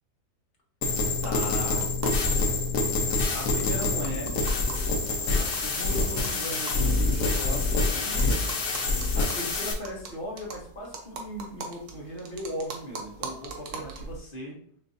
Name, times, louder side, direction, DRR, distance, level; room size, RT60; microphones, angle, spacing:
sound 1, 0.8-9.7, left 3 dB, 75° left, 1.4 m, -26 dB
voice 1, 1.2-1.9 3.3-4.4 5.3-8.3 9.1-14.6, equal, 40° left, -2 dB, 0.8 m, -37 dB
sound 2, 1.2-2.3 2.6-2.7 2.9-3.0 3.3-7.8 8.2-14.2, right 4 dB, 65° right, 1.2 m, -41 dB
6.6 x 2.6 x 2.6 m, 0.62 s
omnidirectional pair, 1.8 m